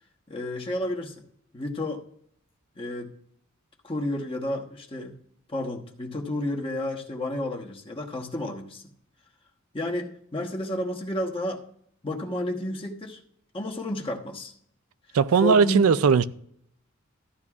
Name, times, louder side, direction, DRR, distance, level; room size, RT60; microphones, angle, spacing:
voice 1, 0.3-1.2 1.5-2.0 2.8-3.1 3.8-5.1 5.5-8.8 9.7-11.6 12.0-13.2 13.5-14.5 15.4-15.9, left 1 dB, 25° left, 1.2 m, -31 dB
voice 2, 15.1-16.2, right 5 dB, 85° right, 0.4 m, -18 dB
14.0 x 10.5 x 2.4 m
head